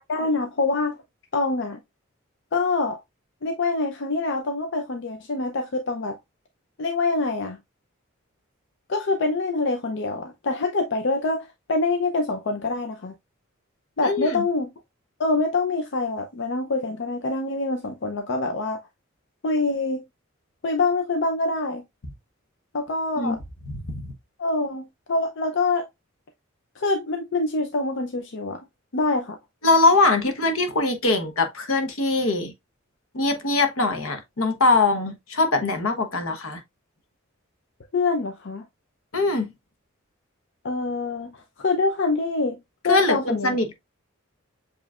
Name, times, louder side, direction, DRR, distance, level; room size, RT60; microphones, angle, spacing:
voice 1, 0.1-1.0 1.3-1.8 2.5-3.0 3.4-6.2 6.8-7.6 8.9-13.1 14.0-14.7 15.2-18.8 19.4-20.0 20.6-21.8 22.7-23.4 24.4-25.9 26.8-28.6 28.9-29.4 37.9-38.6 40.6-42.6 42.8-43.6, left 3 dB, 60° left, 0.6 m, -25 dB
voice 2, 14.0-14.4 23.2-23.4 23.7-23.8 29.6-32.5 33.1-36.6 39.1-39.5 42.9-43.7, left 3 dB, 80° left, 1.1 m, -22 dB
7.2 x 3.1 x 2.4 m
head